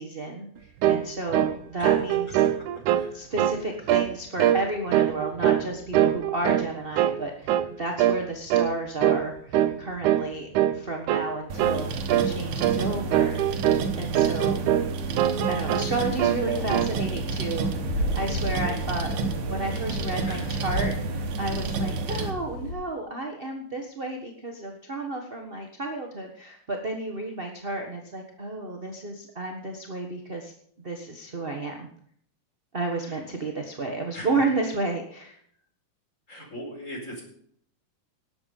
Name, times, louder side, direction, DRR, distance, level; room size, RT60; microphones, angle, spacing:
voice 1, 0.0-2.4 3.1-13.4 14.0-14.7 15.5-30.5 30.8-31.9 32.7-35.4, right 2 dB, 30° right, 2 dB, 1.0 m, -32 dB
sound 1, 0.8-1.1 1.3-1.6 1.8-3.1 3.4-3.6 3.9-4.1 4.4-4.6 4.9-5.7 5.9-6.7 7.0-7.2 7.5-7.7 8.0-8.2 8.5-8.7 9.0-9.3 9.5-9.8 10.0-10.3 10.6-10.8 11.1-11.3 11.6-11.8 12.1-12.3 12.6-12.8 13.1-13.9 14.2-14.9 15.2-15.9 16.2-16.9, right 11 dB, 90° right, 2.3 m, -23 dB
voice 2, 2.9-3.2 12.2-13.2 15.9-16.0 20.3-20.6 33.0-33.2 34.1-34.7 36.3-37.2, equal, 25° left, 1 dB, 4.6 m, -42 dB
sound 2, 11.5-22.3, right 4 dB, 75° right, 2.8 m, -30 dB
sound 3, 16.5-22.7, left 1 dB, 75° left, 6.4 m, -34 dB
19.0 x 8.5 x 5.4 m, 0.64 s
omnidirectional pair, 3.4 m